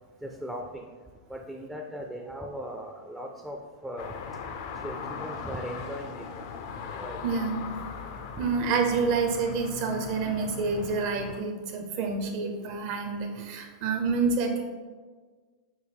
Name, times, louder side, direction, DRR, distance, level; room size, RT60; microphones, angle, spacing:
voice 1, 0.2-0.9 1.3-3.6 3.8-4.1 4.8-6.2 6.8-7.3 8.4-8.5 12.0-12.1, equal, 5° right, 2 dB, 0.4 m, -38 dB
sound 1, 4.0-11.4, left 5 dB, 60° left, 0.4 m, -39 dB
voice 2, 7.2-7.6 8.4-14.6, right 4 dB, 55° right, 3 dB, 0.7 m, -28 dB
6.1 x 2.1 x 3.5 m, 1.5 s
hypercardioid pair, 110°, 2 cm